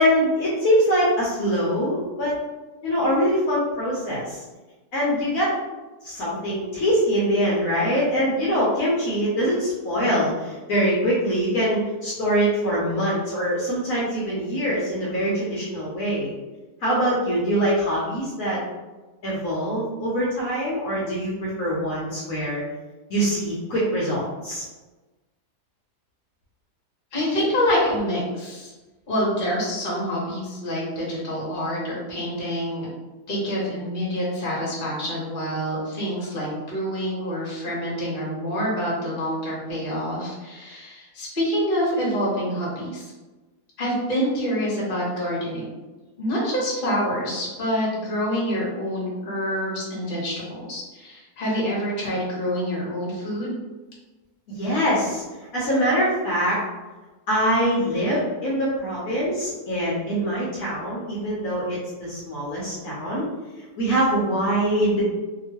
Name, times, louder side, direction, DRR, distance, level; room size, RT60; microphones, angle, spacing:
voice 1, 0.0-2.3 2.8-4.4 4.9-5.5 6.0-16.3 16.8-18.6 19.2-22.6 23.1-24.6 54.6-55.2 55.5-56.6 57.3-63.2 63.8-65.0, equal, 65° left, -7 dB, 1.1 m, -23 dB
voice 2, 27.1-28.7 29.1-32.9 33.3-43.1 43.8-45.7 46.2-53.6, equal, 40° left, -5 dB, 1.0 m, -26 dB
2.9 x 2.5 x 2.9 m, 1.2 s
omnidirectional pair, 1.7 m